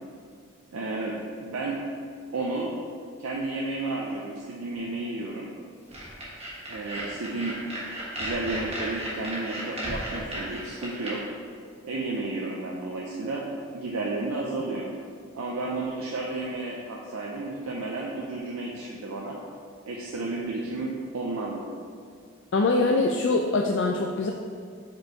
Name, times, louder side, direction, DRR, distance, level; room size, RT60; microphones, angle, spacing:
voice 1, 0.7-1.8 2.3-2.7 3.2-5.5 6.7-7.5 8.2-11.2 11.8-13.5 13.7-14.9 15.3-19.4 19.8-21.7, right 2 dB, 75° right, -2 dB, 0.5 m, -32 dB
sound 1, 5.9-11.1, right 1 dB, 30° right, 1.3 m, -34 dB
voice 2, 22.5-24.3, left 3 dB, 55° left, 1 dB, 0.3 m, -23 dB
5.2 x 4.3 x 4.6 m, 2.2 s
head